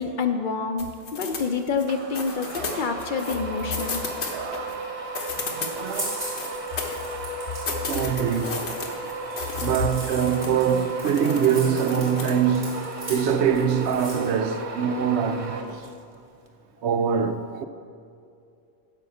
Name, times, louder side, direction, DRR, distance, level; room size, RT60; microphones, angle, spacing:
voice 1, 0.0-4.0, left 5 dB, 60° left, 0.6 m, -27 dB
sound 1, 0.8-1.9 2.1-4.7 5.0-7.3 7.7-9.8 10.1-10.7 11.0-12.4, left 4 dB, 80° left, 1.3 m, -34 dB
sound 2, 1.9-16.1, right 2 dB, 40° right, 0.6 m, -35 dB
voice 2, 4.1-4.9 5.5-6.2 7.9-8.7 9.3-15.9 16.8-17.7, right 7 dB, 90° right, 0.9 m, -24 dB
sound 3, 5.0-14.3, right 1 dB, 60° right, 2.9 m, -39 dB
9.2 x 5.2 x 6.6 m
omnidirectional pair, 1.1 m